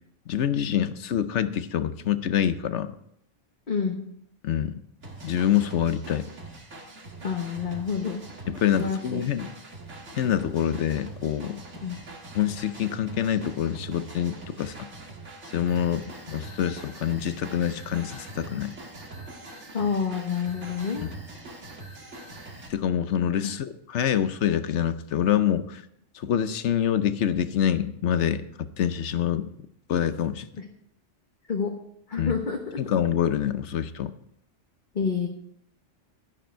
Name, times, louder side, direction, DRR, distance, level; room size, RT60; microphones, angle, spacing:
voice 1, 0.3-2.9 4.4-4.8 5.2-6.3 8.5-9.5 10.2-11.6 12.3-14.8 15.5-18.7 22.7-25.8 26.1-28.4 28.8-29.5 29.9-30.5 32.2-32.3 32.8-34.1, left 9 dB, 70° left, 12 dB, 1.0 m, -26 dB
voice 2, 3.7-4.0 7.2-8.2 8.7-9.2 11.8-12.0 19.7-21.1 23.4-23.5 30.6-30.7 31.5-31.7 32.1-32.8 34.9-35.3, left 6 dB, 40° left, 2 dB, 1.2 m, -28 dB
sound 1, 5.0-22.7, right 2 dB, 65° right, 2.2 m, -43 dB
11.5 x 10.5 x 4.5 m, 0.71 s
omnidirectional pair, 1.3 m